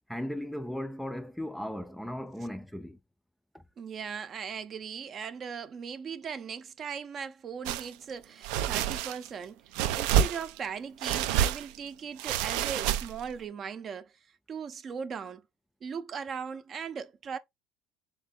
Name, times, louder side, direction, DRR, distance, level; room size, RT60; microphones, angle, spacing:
voice 1, 0.1-3.0 3.5-3.6, left 1 dB, ahead, 0.4 m, -37 dB
voice 2, 3.8-15.4 15.8-17.4, right 6 dB, 40° right, 0.6 m, -39 dB
sound 1, 7.7-7.9 8.4-9.3 9.7-10.7 11.0-11.8 12.2-13.3, right 10 dB, 80° right, 0.5 m, -28 dB
3.8 x 3.4 x 3.8 m
supercardioid pair, 110°, 0 cm